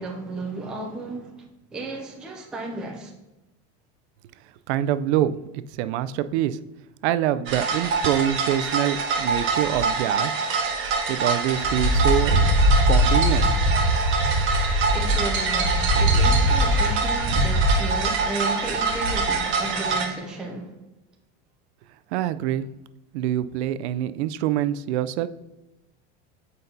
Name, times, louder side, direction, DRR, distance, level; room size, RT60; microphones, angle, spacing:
voice 1, 0.0-1.5 1.7-3.1 14.9-20.8, right 2 dB, ahead, 0.4 m, -33 dB
voice 2, 4.7-6.6 7.0-10.4 11.1-12.4 12.7-13.5 22.1-22.7 23.1-25.3, right 11 dB, 80° right, 0.5 m, -25 dB
sound 1, 7.5-20.1, right 2 dB, 35° right, 1.1 m, -22 dB
7.9 x 5.3 x 2.7 m
supercardioid pair, 155°, 33 cm